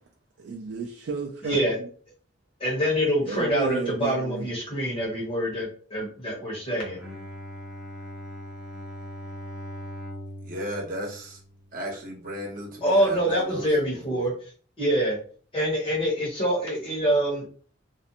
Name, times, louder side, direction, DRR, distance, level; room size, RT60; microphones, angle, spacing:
voice 1, 0.4-1.7 3.2-4.5, right 5 dB, 65° right, 0.3 m, -33 dB
voice 2, 1.4-1.8 2.6-7.0 12.8-15.2 15.5-17.5, equal, 30° left, 1.0 m, -25 dB
Bowed string instrument, 6.8-12.0, equal, 5° right, 0.7 m, -40 dB
voice 3, 10.4-11.4 11.7-13.7 14.1-14.3, equal, 50° right, 0.9 m, -34 dB
2.5 x 2.1 x 2.8 m
head